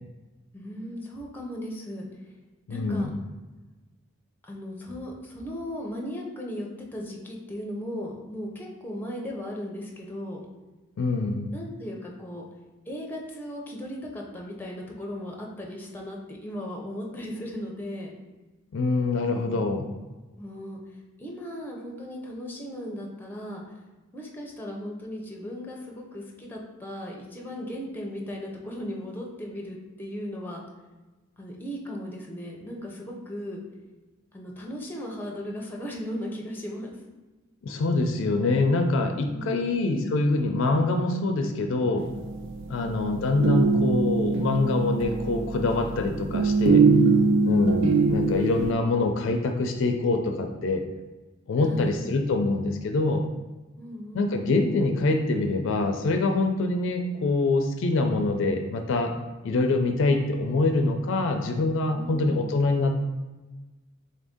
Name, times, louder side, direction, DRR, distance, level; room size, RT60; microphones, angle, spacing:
voice 1, 0.5-2.0 2.7-3.1 4.4-10.4 11.5-12.4 12.9-18.1 19.2-19.5 20.4-20.8 21.2-23.6 24.1-30.6 31.4-33.6 34.3-36.9 39.3-39.9 42.6-43.2 51.6-52.0 53.8-54.4 61.9-62.5, equal, 10° left, -1 dB, 0.5 m, -37 dB
voice 2, 2.7-3.1 11.0-11.5 18.7-19.9 37.6-42.1 42.7-46.8 47.4-50.8 51.5-53.2 54.1-59.1 59.4-63.0, left 2 dB, 65° left, 5 dB, 0.4 m, -25 dB
sound 1, 42.0-48.7, right 4 dB, 65° right, 0.3 m, -23 dB
3.8 x 2.6 x 3.6 m, 1.2 s
head